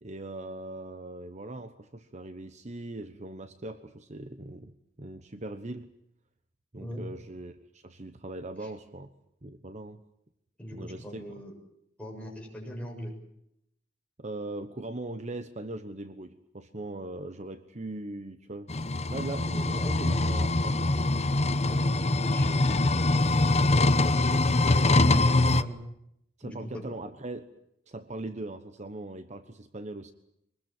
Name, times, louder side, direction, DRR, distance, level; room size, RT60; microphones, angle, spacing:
voice 1, 0.0-5.9 6.7-9.1 9.4-10.0 10.7-11.4 14.2-18.7 19.1-21.1 26.4-27.5 27.9-30.1, right 2 dB, 40° right, 10 dB, 1.1 m, -40 dB
voice 2, 10.6-11.5 12.0-13.1 19.5-20.2 21.7-23.4 24.0-25.8 26.4-26.8, equal, 5° left, -1 dB, 7.4 m, -40 dB
sound 1, 18.7-25.6, left 2 dB, 35° left, 0.9 m, -24 dB
24.0 x 20.5 x 9.0 m, 0.77 s
head